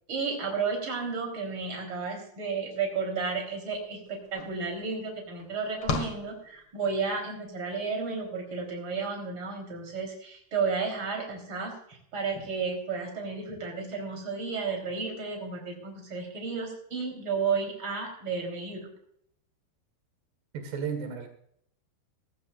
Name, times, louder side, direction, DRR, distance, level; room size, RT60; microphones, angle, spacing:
voice 1, 0.1-18.9, right 5 dB, 30° right, 2 dB, 4.3 m, -32 dB
sound 1, 3.7-3.8 4.1-7.1, left 4 dB, 45° left, 1.8 m, -37 dB
voice 2, 20.5-21.3, right 6 dB, 80° right, 5 dB, 3.8 m, -33 dB
19.0 x 14.5 x 2.5 m, 0.67 s
omnidirectional pair, 4.7 m